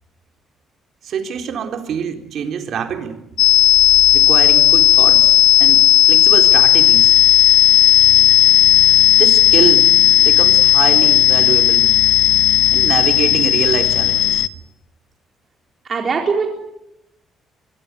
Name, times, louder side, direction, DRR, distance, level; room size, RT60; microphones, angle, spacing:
voice 1, 1.0-3.2 4.1-5.3 5.6-7.1 9.2-11.9 12.7-14.4, right 7 dB, 60° right, 5 dB, 4.1 m, -24 dB
sound 1, 3.4-14.5, left 12 dB, 70° left, 1.0 m, -12 dB
voice 2, 15.8-16.5, right 5 dB, 35° right, 1 dB, 4.0 m, -20 dB
24.0 x 23.0 x 9.4 m, 0.85 s
cardioid pair, 135°, 0 cm